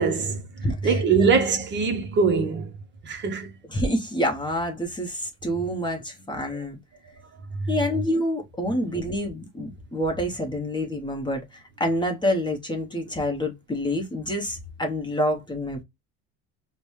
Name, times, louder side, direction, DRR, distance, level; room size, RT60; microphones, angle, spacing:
voice 1, 0.0-2.7 3.0-3.5 6.5-6.6 7.6-7.7, right 5 dB, 35° right, 0.6 m, -23 dB
voice 2, 0.6-1.3 3.7-6.8 7.7-15.8, equal, 15° left, 0.7 m, -27 dB
5.1 x 2.1 x 3.0 m
cardioid pair, 140°, 34 cm